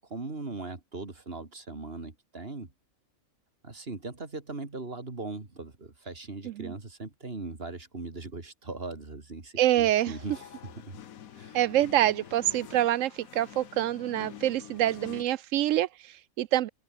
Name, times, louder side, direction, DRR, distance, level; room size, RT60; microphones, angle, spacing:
voice 1, 0.0-2.7 3.6-10.4 10.8-11.0 11.3-11.6, right 3 dB, 40° right, 3.1 m, -39 dB
voice 2, 6.4-6.8 9.6-10.1 11.5-16.7, right 13 dB, 70° right, 0.9 m, -26 dB
sound 1, 9.9-15.2, left 10 dB, 75° left, 1.4 m, -47 dB
open air
omnidirectional pair, 1.5 m